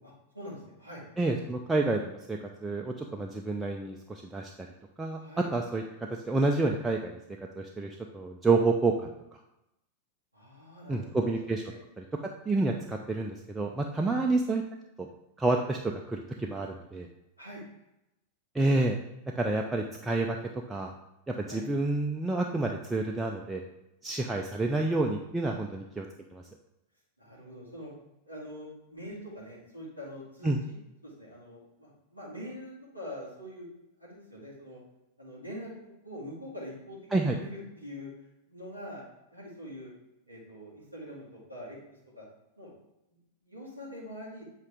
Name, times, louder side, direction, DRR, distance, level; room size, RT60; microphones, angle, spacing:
voice 1, 0.0-1.0 5.2-5.5 10.3-11.3 11.6-11.8 14.0-14.3 17.4-17.6 21.4-21.6 25.5-25.8 27.2-27.9 28.2-30.8 31.0-33.7 34.0-34.8 35.2-38.1 38.5-39.0 39.3-39.9 40.3-41.8 42.1-42.3 42.6-42.7 43.4-44.4, equal, 90° left, -8 dB, 2.3 m, -44 dB
voice 2, 1.2-4.5 5.0-5.2 5.5-7.2 7.6-9.1 10.9-11.6 12.0-12.1 12.5-14.6 15.0-15.1 15.4-17.1 18.5-19.0 19.4-20.4 20.7-20.9 21.3-23.6 24.0-26.1 26.3-26.4 30.4-30.6 37.1-37.4, right 2 dB, 10° right, 1 dB, 0.5 m, -29 dB
8.2 x 4.0 x 3.4 m, 0.90 s
figure-of-eight pair, 90°, 0 cm